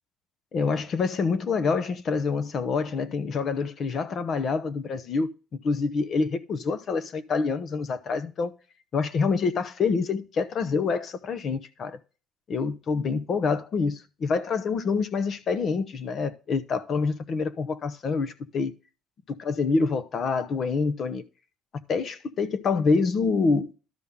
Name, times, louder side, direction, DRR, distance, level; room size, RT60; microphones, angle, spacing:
voice 1, 0.5-5.3 5.6-8.5 8.9-12.0 12.5-18.7 19.3-21.2 21.7-23.8, left 4 dB, 40° left, 0.8 m, -26 dB
12.5 x 5.6 x 3.7 m
cardioid pair, 160°, 0 cm